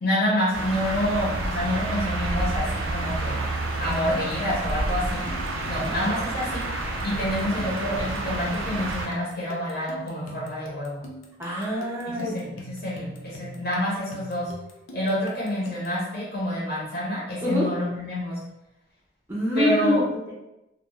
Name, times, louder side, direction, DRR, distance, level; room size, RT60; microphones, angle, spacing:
voice 1, 0.0-3.4 3.8-5.3 5.7-6.6 7.0-11.0 12.1-14.5 14.9-18.4 19.6-20.0, left 1 dB, 50° left, -6 dB, 0.8 m, -28 dB
sound 1, 0.5-9.1, right 2 dB, 85° right, 0.5 m, -29 dB
sound 2, 3.7-16.0, right 1 dB, 90° left, 0.5 m, -44 dB
voice 2, 5.8-6.1 11.4-12.4 17.4-17.7 19.3-20.0, equal, 10° right, -7 dB, 0.5 m, -26 dB
2.3 x 2.2 x 3.0 m, 0.90 s
head